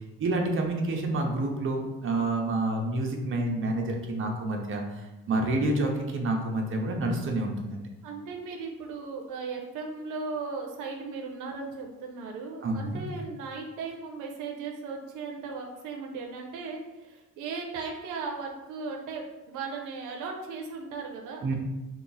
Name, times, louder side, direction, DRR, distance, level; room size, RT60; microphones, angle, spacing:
voice 1, 0.2-7.8 12.6-13.0 21.4-21.5, right 2 dB, 45° right, 1 dB, 0.7 m, -28 dB
voice 2, 8.0-21.5, right 4 dB, 90° right, 1 dB, 0.6 m, -37 dB
2.9 x 2.4 x 3.9 m, 1.1 s
cardioid pair, 90°, 30 cm